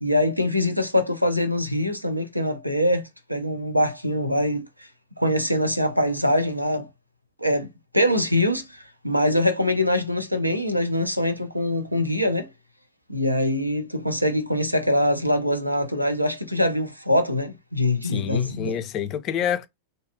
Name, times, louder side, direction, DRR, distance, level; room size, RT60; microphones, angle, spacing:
voice 1, 0.0-4.9 5.2-6.9 7.4-7.7 7.9-12.5 13.1-18.8, left 1 dB, 90° right, 0.5 m, -23 dB
voice 2, 18.0-19.7, left 9 dB, 35° left, 0.4 m, -27 dB
2.5 x 2.3 x 2.4 m
figure-of-eight pair, 90°, 0 cm